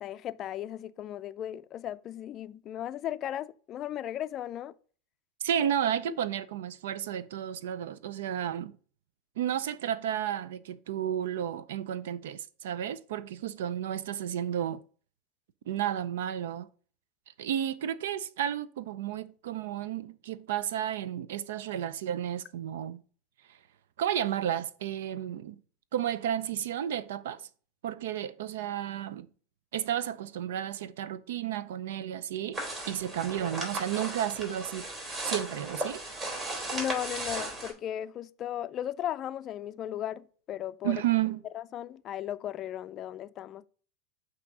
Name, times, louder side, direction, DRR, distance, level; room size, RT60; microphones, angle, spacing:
voice 1, 0.0-4.7 36.7-41.0 41.5-43.7, left 11 dB, 40° left, 0.3 m, -36 dB
voice 2, 5.4-8.8 9.4-14.8 15.7-16.7 17.4-23.0 24.0-25.6 25.9-27.5 27.8-29.3 29.7-32.6 32.8-34.9 35.2-36.0 40.8-41.4, right 10 dB, 80° right, 0.4 m, -32 dB
sound 1, 32.5-37.7, right 2 dB, 30° right, 3.1 m, -36 dB
8.4 x 2.8 x 4.7 m
hypercardioid pair, 105°, 0 cm